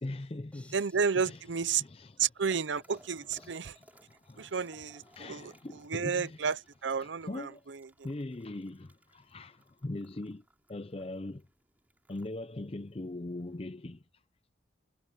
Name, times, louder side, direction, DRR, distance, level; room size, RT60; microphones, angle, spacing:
voice 1, 0.0-0.7 1.2-1.4 1.8-2.2 3.4-4.6 5.1-6.4 7.0-7.6 8.0-10.4 10.7-11.5 12.1-14.0, left 2 dB, 30° left, 0.5 m, -41 dB
sound 1, 0.5-2.8, left 2 dB, 5° left, 3.3 m, -64 dB
sound 2, 0.7-13.6, right 1 dB, 10° right, 6.7 m, -65 dB
voice 2, 0.7-1.8 2.2-3.8 4.4-5.5 5.8-7.9, right 6 dB, 75° right, 0.7 m, -32 dB
head